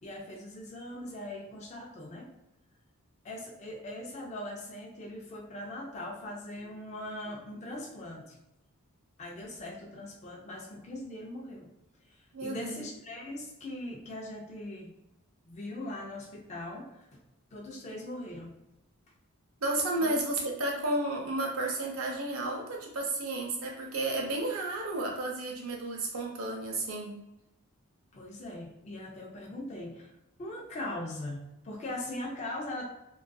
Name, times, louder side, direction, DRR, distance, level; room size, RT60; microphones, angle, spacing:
voice 1, 0.0-2.3 3.2-8.4 9.2-11.7 12.1-14.9 15.5-17.1 17.5-18.5 20.0-20.2 28.1-30.1 30.4-32.8, left 1 dB, 30° left, -1 dB, 0.3 m, -40 dB
voice 2, 12.3-12.8 19.6-27.2, right 2 dB, 70° right, 0 dB, 0.6 m, -32 dB
2.5 x 2.3 x 2.2 m, 0.89 s
head